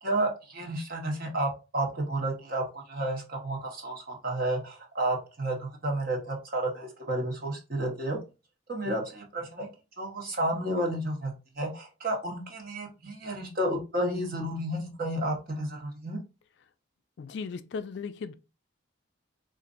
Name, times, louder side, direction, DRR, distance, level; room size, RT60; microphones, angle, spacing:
voice 1, 0.0-8.2 8.7-9.7 10.0-16.2, right 1 dB, 45° right, 1.1 m, -31 dB
voice 2, 17.2-18.3, left 5 dB, 60° left, 0.3 m, -37 dB
4.3 x 2.5 x 2.5 m
head